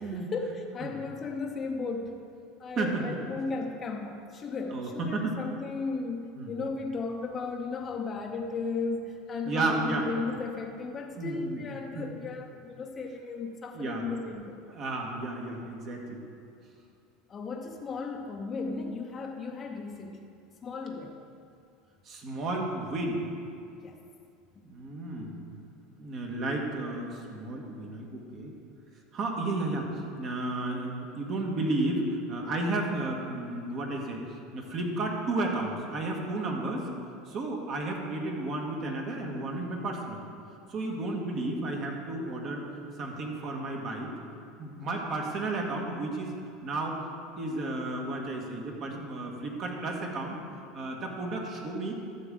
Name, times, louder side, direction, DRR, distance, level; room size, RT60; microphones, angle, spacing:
voice 1, 0.0-2.2 2.6-14.6 17.3-20.2 20.6-21.2 23.8-24.0, left 4 dB, 30° left, 1 dB, 0.7 m, -35 dB
voice 2, 2.8-3.2 4.7-5.4 6.3-6.5 9.4-10.1 11.2-11.6 11.9-12.1 13.7-14.0 14.7-16.2 22.0-23.3 24.6-25.6 26.0-28.5 29.1-34.2 34.5-36.9 37.3-40.3 40.7-42.7 43.0-44.1 44.6-47.0 47.4-50.4 50.7-51.9, right 2 dB, 45° right, 1 dB, 1.6 m, -32 dB
12.5 x 7.4 x 3.8 m, 2.5 s
supercardioid pair, 120°, 0 cm